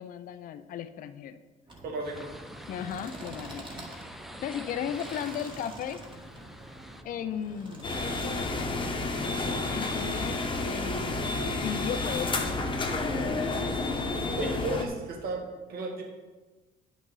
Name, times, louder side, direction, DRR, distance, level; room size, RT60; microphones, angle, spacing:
voice 1, 0.0-1.4 2.7-3.7 4.4-6.0 7.0-7.9 9.7-12.6, left 9 dB, 55° left, 10 dB, 0.5 m, -36 dB
sound 1, 1.7-13.9, right 1 dB, 30° right, 1.6 m, -47 dB
voice 2, 1.8-2.3 14.4-16.0, right 2 dB, 65° right, 2 dB, 1.6 m, -34 dB
sound 2, 2.0-7.0, equal, ahead, 0.6 m, -46 dB
sound 3, 7.8-14.9, left 2 dB, 30° left, 1.1 m, -30 dB
10.0 x 6.2 x 4.0 m, 1.3 s
cardioid pair, 110°, 17 cm